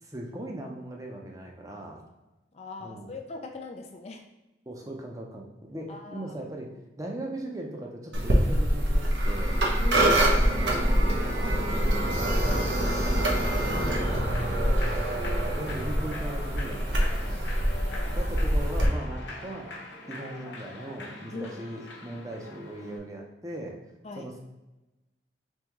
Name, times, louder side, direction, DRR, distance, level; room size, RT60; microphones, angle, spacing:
voice 1, 0.0-2.0 2.8-3.1 4.7-9.6 10.2-13.3 13.6-14.8 15.2-17.5 18.0-19.7 20.1-23.8 24.2-24.4, right 1 dB, 20° right, 0 dB, 0.6 m, -39 dB
voice 2, 2.5-4.3 5.9-6.4 9.8-10.8 15.2-15.6 17.8-18.3 21.3-21.6 24.0-24.3, left 3 dB, 35° left, 3 dB, 0.3 m, -41 dB
sound 1, 8.1-18.8, right 1 dB, 85° right, 0.9 m, -25 dB
Human voice / Clapping / Cheering, 13.3-23.0, left 2 dB, 85° left, 0.7 m, -43 dB
3.6 x 3.5 x 3.0 m, 1.0 s
head